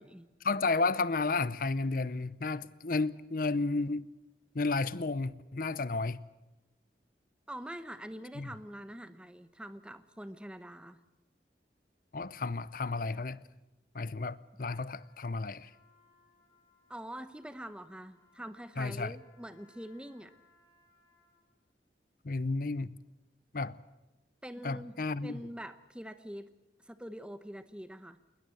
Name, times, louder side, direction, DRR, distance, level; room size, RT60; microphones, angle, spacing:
voice 1, 0.4-4.1 4.5-6.2 8.4-8.5 12.1-13.4 13.9-15.7 18.8-19.1 22.2-22.9 23.5-23.8 24.6-25.3, left 3 dB, 50° left, 0.7 m, -32 dB
voice 2, 7.5-11.0 16.9-20.3 24.4-25.0 25.2-26.6 26.8-28.2, equal, 5° right, 0.9 m, -45 dB
Trumpet, 14.6-21.6, left 3 dB, 20° left, 5.2 m, -68 dB
20.5 x 20.0 x 7.8 m
head